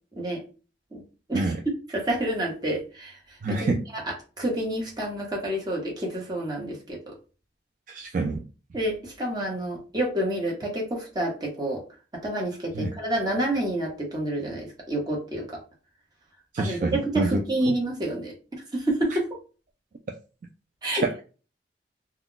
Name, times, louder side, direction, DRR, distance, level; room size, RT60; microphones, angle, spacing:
voice 1, 1.3-7.1 8.7-11.8 12.2-15.6 16.6-18.3 18.7-19.3 20.8-21.2, right 1 dB, 25° right, -2 dB, 0.9 m, -29 dB
voice 2, 3.4-3.8 7.9-8.5 12.8-12.9 16.5-17.4 21.0-21.1, right 3 dB, 50° right, 2 dB, 0.3 m, -26 dB
2.3 x 2.2 x 3.7 m, 0.34 s
head